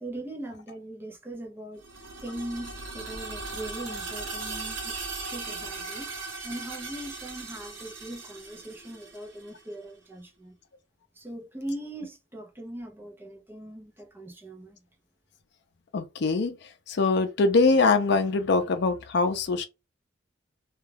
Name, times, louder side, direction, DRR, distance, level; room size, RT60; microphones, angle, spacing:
voice 1, 0.0-1.8 2.2-5.0 5.3-6.1 6.4-10.5 11.2-14.8, right 1 dB, 10° right, 0.5 m, -40 dB
sound 1, 1.8-9.6, right 3 dB, 80° right, 0.8 m, -38 dB
voice 2, 15.9-19.6, left 3 dB, 60° left, 0.5 m, -23 dB
2.3 x 2.2 x 3.2 m
head